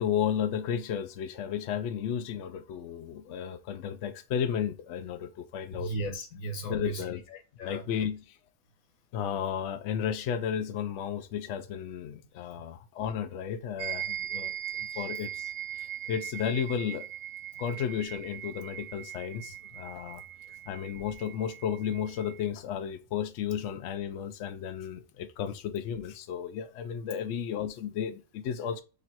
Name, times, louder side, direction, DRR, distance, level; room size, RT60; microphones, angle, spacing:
voice 1, 0.0-5.9 6.6-7.2 7.6-8.4 9.1-15.5 15.8-17.1 17.6-28.8, left 8 dB, 65° left, 0.8 m, -33 dB
voice 2, 5.7-7.8 14.9-15.0, right 2 dB, 90° left, 1.4 m, -37 dB
sound 1, 13.8-22.5, right 11 dB, 75° right, 0.9 m, -40 dB
3.3 x 3.0 x 4.3 m
omnidirectional pair, 1.4 m